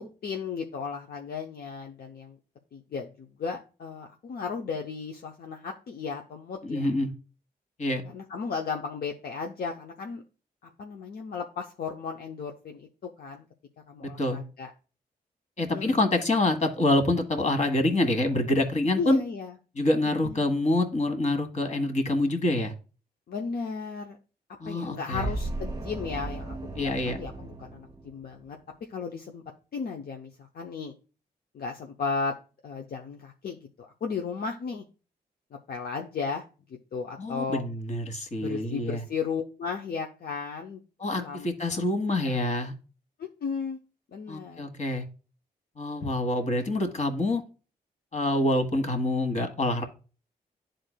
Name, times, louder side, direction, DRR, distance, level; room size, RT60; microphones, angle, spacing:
voice 1, 0.0-2.4 2.7-6.9 8.1-10.2 10.6-13.5 13.9-14.7 15.7-16.1 19.0-19.5 20.2-20.5 23.3-24.2 24.7-28.6 28.9-29.4 29.7-30.9 31.5-32.3 32.6-33.7 34.0-34.8 35.7-36.4 36.9-37.6 38.4-40.8 41.2-41.8 42.2-42.5 43.2-43.8 44.1-44.6, left 5 dB, 65° left, 2 dB, 0.7 m, -35 dB
voice 2, 6.6-7.1 7.8-8.0 14.0-14.4 15.6-19.2 19.7-22.7 24.6-25.3 26.8-27.2 37.2-39.0 41.0-42.7 44.3-45.0 45.8-47.4 48.1-49.9, left 1 dB, 45° left, 6 dB, 1.6 m, -26 dB
sound 1, 25.1-28.6, right 2 dB, 25° right, 1.1 m, -36 dB
11.0 x 3.9 x 2.2 m, 0.35 s
supercardioid pair, 50°, 17 cm